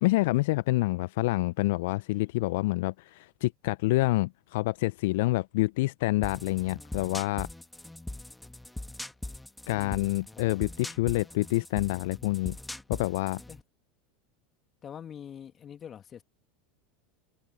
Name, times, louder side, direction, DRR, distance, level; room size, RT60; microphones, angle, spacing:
voice 1, 0.0-7.5 9.7-12.6 12.9-13.4, left 20 dB, 60° left, 0.7 m, -27 dB
sound 1, 6.2-13.6, left 1 dB, 5° left, 1.7 m, -41 dB
voice 2, 14.8-16.2, left 8 dB, 30° left, 2.7 m, -44 dB
figure-of-eight pair, 80°, 0 cm